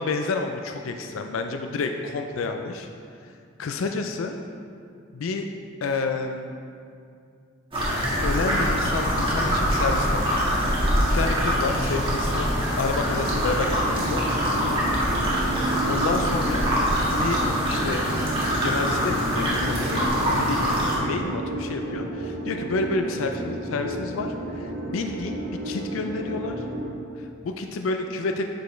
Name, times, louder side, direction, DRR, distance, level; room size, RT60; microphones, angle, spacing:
voice 1, 0.0-2.9 3.6-4.4 5.1-5.5 5.8-6.6 8.2-10.4 11.1-12.5 12.8-14.2 15.8-16.7 17.1-17.4 17.7-18.0 18.6-20.6 20.9-26.6 27.2-28.5, left 3 dB, 80° left, 5 dB, 0.4 m, -29 dB
sound 1, 7.7-21.0, equal, 25° right, 1.5 m, -24 dB
sound 2, 13.1-26.9, right 2 dB, 45° right, 1.6 m, -33 dB
8.0 x 5.3 x 3.2 m, 2.3 s
head